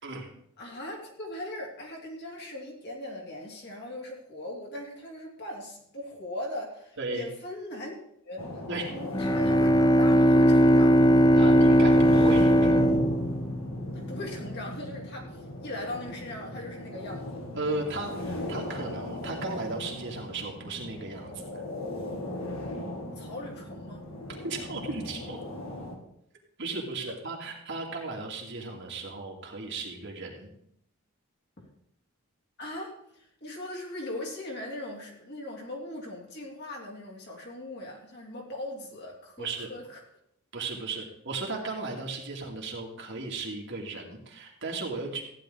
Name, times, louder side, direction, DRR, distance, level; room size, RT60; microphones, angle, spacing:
voice 1, 0.6-7.9 8.2-11.1 13.9-17.4 23.1-24.1 31.6-31.7 32.6-40.0, left 1 dB, 50° left, -1 dB, 3.2 m, -39 dB
sound 1, 8.4-26.0, left 1 dB, 65° left, 2.4 m, -37 dB
Bowed string instrument, 9.1-14.3, equal, 20° left, 0.4 m, -20 dB
voice 2, 11.3-12.7 17.5-21.6 24.4-25.4 26.6-30.5 39.4-39.7 40.5-45.2, right 3 dB, 55° right, 0 dB, 2.5 m, -35 dB
15.0 x 10.0 x 3.9 m, 0.73 s
head